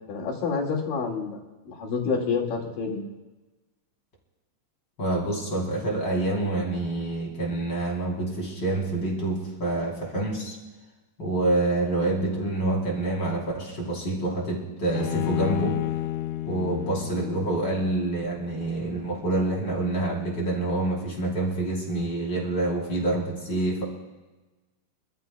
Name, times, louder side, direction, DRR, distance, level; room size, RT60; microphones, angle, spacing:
voice 1, 0.1-1.4 1.7-3.1, left 5 dB, 70° left, -1 dB, 3.7 m, -28 dB
voice 2, 5.0-10.6 11.2-15.8 16.5-23.8, right 2 dB, 30° left, -3 dB, 3.7 m, -27 dB
Bowed string instrument, 14.9-18.2, left 14 dB, 85° left, 1.7 m, -30 dB
26.5 x 14.0 x 2.3 m, 1.2 s
omnidirectional pair, 4.1 m